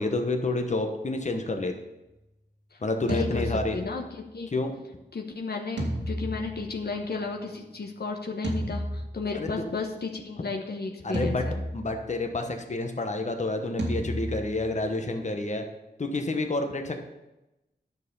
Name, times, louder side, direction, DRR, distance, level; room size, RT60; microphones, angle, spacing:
voice 1, 0.0-1.7 2.8-3.8 4.5-4.7 9.3-9.5 11.0-11.5 11.7-15.6 16.0-17.0, left 2 dB, 40° left, 4 dB, 1.1 m, -29 dB
voice 2, 2.7-3.5 3.7-4.5 5.1-11.6, left 4 dB, 65° left, 1 dB, 1.1 m, -34 dB
sound 1, 3.1-4.3 5.8-7.3 8.4-9.6 11.1-12.4 13.8-14.9, equal, 85° right, 2.1 m, -33 dB
10.5 x 6.7 x 5.4 m, 0.96 s
wide cardioid pair, 80°, 18 cm